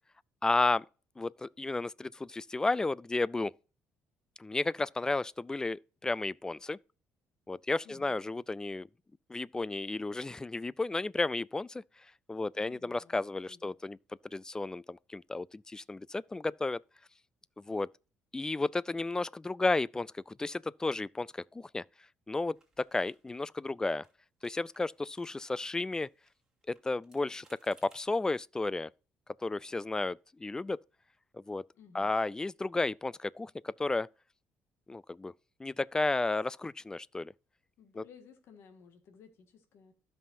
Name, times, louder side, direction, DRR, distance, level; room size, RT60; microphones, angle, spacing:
voice 1, 0.4-0.9 1.2-3.5 4.4-6.8 7.5-8.9 9.3-11.8 12.3-14.0 14.3-16.8 17.6-17.9 18.3-21.8 22.3-24.0 24.4-26.1 26.7-28.9 29.4-30.8 31.3-31.7 31.9-34.1 34.9-35.3 35.6-37.3 37.9-38.0, left 3 dB, 15° left, 0.3 m, -33 dB
voice 2, 7.8-8.2 12.6-13.2 13.5-13.7 31.7-32.1 37.8-39.9, left 6 dB, 65° left, 1.8 m, -56 dB
sound 1, 22.5-23.7 24.0-24.1 24.4-25.7 26.0-28.1, right 2 dB, 15° right, 2.6 m, -66 dB
15.0 x 5.5 x 2.7 m
cardioid pair, 95°, 5 cm